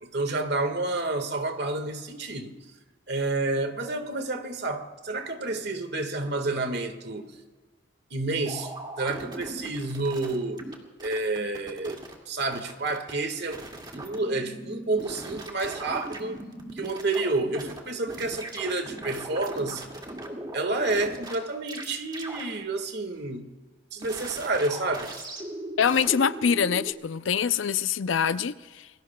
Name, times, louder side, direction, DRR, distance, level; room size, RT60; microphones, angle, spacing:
voice 1, 0.0-2.5 3.1-7.3 8.1-10.6 11.0-13.6 13.9-16.4 16.8-19.9 20.5-23.5 23.9-25.1, right 2 dB, 60° right, 1.7 m, -29 dB
sound 1, 8.4-10.7 11.0-12.1 12.4-13.1 13.5-17.8 18.1-21.4 21.7-21.9 22.1-22.4 24.0-26.9, right 1 dB, 25° right, 2.2 m, -39 dB
voice 2, 25.8-28.9, left 7 dB, 80° left, 0.5 m, -25 dB
28.5 x 21.5 x 2.3 m
head